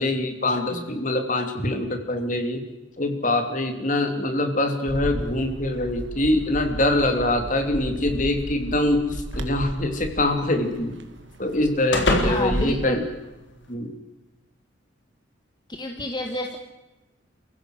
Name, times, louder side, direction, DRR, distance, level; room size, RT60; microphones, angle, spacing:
voice 1, 0.0-2.6 3.0-10.9 11.4-13.0 13.7-13.9, left 1 dB, 40° left, 6 dB, 3.2 m, -24 dB
Bird, 4.9-12.9, equal, 70° right, 2.2 m, -34 dB
sound 1, 9.3-13.7, left 1 dB, 70° left, 4.0 m, -30 dB
voice 2, 12.2-13.1 15.7-16.6, left 1 dB, 20° left, 4 dB, 1.6 m, -29 dB
29.0 x 16.0 x 8.0 m, 1.1 s
head